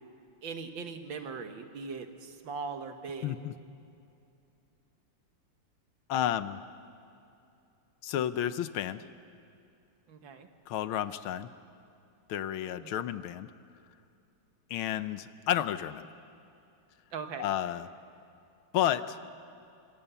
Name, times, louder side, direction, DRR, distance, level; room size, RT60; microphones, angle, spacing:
voice 1, 0.4-3.3 10.1-10.5 12.8-13.0 17.1-17.5, right 5 dB, 65° right, 7 dB, 2.1 m, -40 dB
voice 2, 3.2-3.5 6.1-6.6 8.0-9.1 10.7-11.5 12.3-13.5 14.7-16.1 17.4-17.9 18.7-19.2, left 11 dB, 75° left, 13 dB, 1.6 m, -31 dB
25.0 x 25.0 x 7.0 m, 2.6 s
omnidirectional pair, 2.3 m